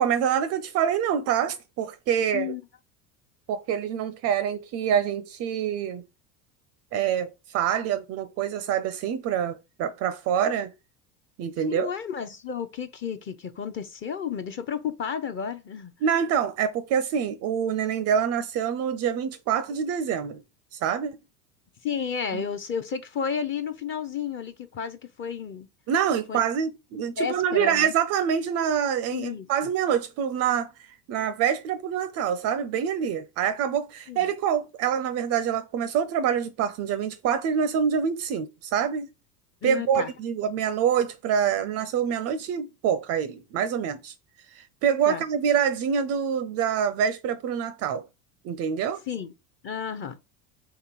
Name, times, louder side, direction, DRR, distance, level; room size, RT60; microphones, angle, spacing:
voice 1, 0.0-2.5 3.5-6.0 6.9-10.7 11.4-11.9 16.0-20.4 20.7-21.2 22.3-22.4 25.9-30.7 31.1-39.1 39.6-44.1 44.5-48.1 48.4-49.0, right 8 dB, 35° right, 0.4 m, -26 dB
voice 2, 2.3-2.7 11.7-15.9 21.8-25.7 26.3-26.5 27.2-27.9 29.1-29.5 34.1-34.3 39.6-40.1 45.1-45.2 49.1-49.3 49.6-50.2, left 7 dB, 25° left, 0.5 m, -32 dB
3.6 x 3.2 x 4.4 m
hypercardioid pair, 75°, 47 cm